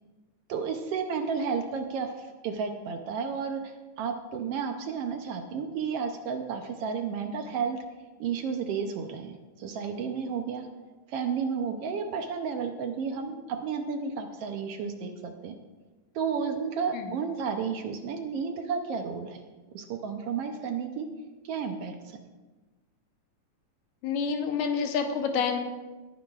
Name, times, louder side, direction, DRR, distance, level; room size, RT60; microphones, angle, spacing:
voice 1, 0.5-7.8 8.2-10.7 11.1-15.5 16.1-19.4 19.7-21.1 21.4-22.2, right 6 dB, 70° right, 5 dB, 1.5 m, -32 dB
voice 2, 24.0-25.6, left 6 dB, 85° left, 5 dB, 2.4 m, -28 dB
18.0 x 10.0 x 2.4 m, 1.2 s
omnidirectional pair, 3.4 m